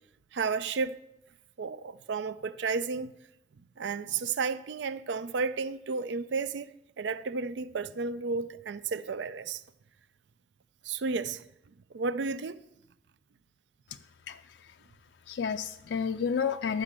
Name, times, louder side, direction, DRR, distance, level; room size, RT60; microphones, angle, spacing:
voice 1, 0.3-1.0 1.6-3.1 3.8-6.7 7.0-9.6 10.8-11.4 11.9-12.6, right 4 dB, 75° right, 0.4 m, -32 dB
voice 2, 14.3-14.7 15.3-16.8, left 6 dB, 70° left, 0.4 m, -31 dB
11.5 x 5.2 x 7.3 m
head